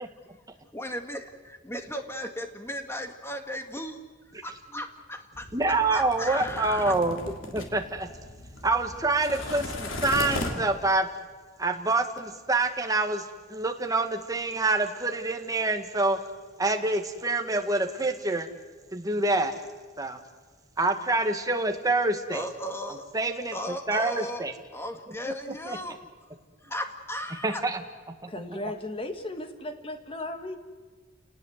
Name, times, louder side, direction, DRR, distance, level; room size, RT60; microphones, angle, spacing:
voice 1, 0.7-4.0 4.4-5.5 5.9-7.0 22.3-23.1 23.5-24.5 24.7-26.0 26.6-27.6, equal, 15° left, 6 dB, 1.9 m, -36 dB
sound 1, 5.3-10.9, left 2 dB, 80° left, 3.4 m, -37 dB
voice 2, 5.5-7.2 7.4-8.1 8.6-11.1 11.6-16.2 16.6-18.5 18.9-19.5 20.0-20.2 20.8-22.4 23.1-23.5 23.9-24.5 25.7-25.8 27.4-27.8 28.2-28.3, right 2 dB, 20° right, 5 dB, 1.8 m, -26 dB
voice 3, 28.3-30.6, left 2 dB, 30° left, 6 dB, 1.9 m, -36 dB
29.5 x 19.0 x 8.0 m, 1.4 s
head